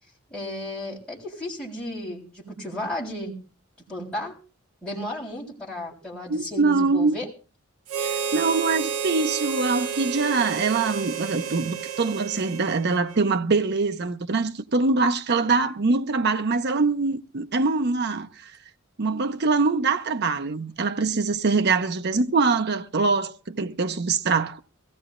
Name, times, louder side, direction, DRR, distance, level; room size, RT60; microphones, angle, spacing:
voice 1, 0.3-3.3 3.9-4.3 4.8-7.3, left 1 dB, 5° left, 3.8 m, -34 dB
voice 2, 6.3-7.2 8.0-18.5 19.0-24.6, right 4 dB, 50° right, 0.7 m, -23 dB
Harmonica, 7.9-13.4, right 7 dB, 80° right, 0.9 m, -31 dB
22.5 x 16.0 x 2.5 m
head